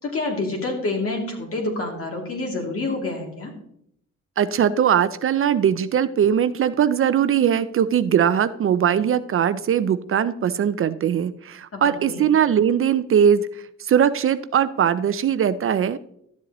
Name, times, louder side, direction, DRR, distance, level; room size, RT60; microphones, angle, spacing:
voice 1, 0.0-3.5 11.7-12.3, left 2 dB, 50° left, 1 dB, 2.8 m, -28 dB
voice 2, 4.4-13.5 13.8-16.0, right 8 dB, 45° right, 13 dB, 0.5 m, -20 dB
12.5 x 7.5 x 3.0 m, 0.72 s
cardioid pair, 90°, 30 cm